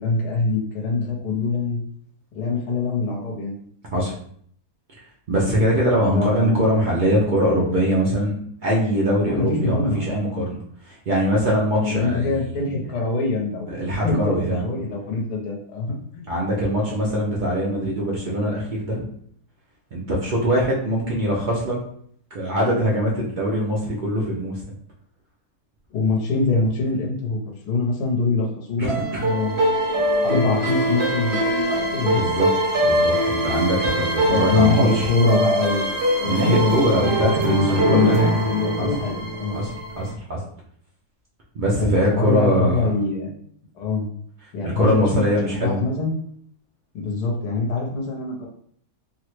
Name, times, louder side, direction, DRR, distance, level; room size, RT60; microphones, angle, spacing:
voice 1, 0.0-1.8 2.3-3.6 6.1-6.6 9.2-10.2 11.8-14.3 14.6-16.2 25.9-27.4 27.6-28.9 29.2-29.6 30.2-32.2 34.3-36.7 37.0-39.6 41.8-43.3 43.7-44.1 44.5-46.1 46.9-48.5, left 3 dB, 85° left, -1 dB, 1.3 m, -24 dB
voice 2, 5.3-12.7 13.7-14.6 16.3-19.0 19.9-21.8 22.3-24.6 28.8-29.2 32.2-32.5 32.8-35.1 36.2-38.3 38.8-38.9 39.5-39.7 40.0-40.4 41.5-42.9 44.6-45.8, equal, 85° right, -5 dB, 0.4 m, -22 dB
sound 1, 28.9-40.1, right 1 dB, 55° right, 0.9 m, -23 dB
3.4 x 2.0 x 3.0 m, 0.62 s
omnidirectional pair, 1.7 m